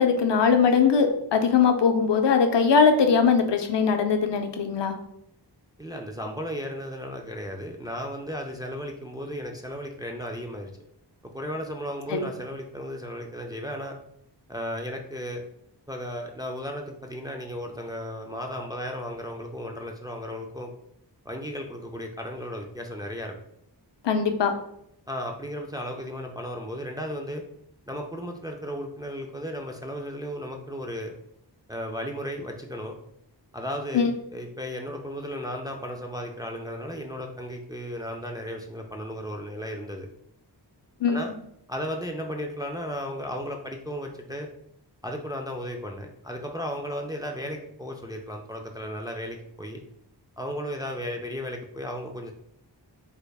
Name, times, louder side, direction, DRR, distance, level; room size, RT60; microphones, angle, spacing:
voice 1, 0.0-5.0 12.1-12.2 24.0-24.5 33.9-34.1 41.0-41.2, left 6 dB, 80° left, 6 dB, 0.5 m, -21 dB
voice 2, 5.8-10.7 11.2-13.9 14.5-15.4 15.9-20.7 21.3-23.4 25.1-27.4 27.9-31.1 31.7-32.9 33.5-40.1 41.1-41.3 41.7-44.5 45.0-49.8 50.4-52.3, equal, 10° right, 2 dB, 0.3 m, -35 dB
3.4 x 3.3 x 2.3 m, 0.73 s
wide cardioid pair, 80°, 42 cm